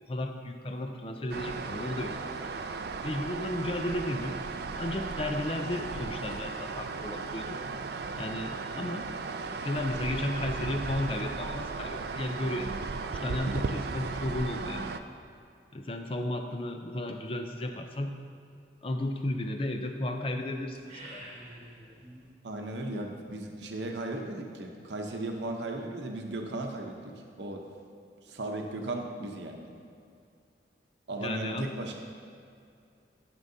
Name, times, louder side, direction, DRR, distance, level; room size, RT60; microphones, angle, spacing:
voice 1, 0.1-2.5 3.0-4.4 4.8-7.6 8.2-9.1 9.6-14.9 15.7-18.2 18.8-21.3 31.2-31.7, left 1 dB, 30° left, 5 dB, 0.5 m, -34 dB
sound 1, 1.3-15.0, right 4 dB, 60° right, 0.4 m, -36 dB
sound 2, 20.7-22.3, right 1 dB, 35° right, 1.2 m, -48 dB
voice 2, 22.4-27.6 28.3-29.7 31.1-32.0, right 2 dB, 80° right, 2 dB, 0.8 m, -36 dB
13.0 x 6.0 x 2.7 m, 2.5 s
head